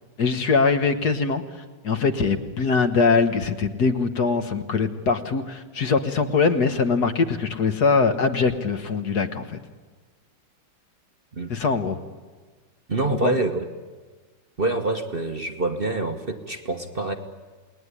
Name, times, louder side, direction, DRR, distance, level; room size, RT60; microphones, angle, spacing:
voice 1, 0.2-1.4 1.8-9.6 11.5-12.0 13.2-13.3, left 4 dB, 60° left, 8 dB, 1.8 m, -22 dB
voice 2, 12.9-13.6 14.6-17.1, right 2 dB, 35° right, 5 dB, 1.2 m, -26 dB
28.5 x 20.0 x 9.9 m, 1.4 s
omnidirectional pair, 2.1 m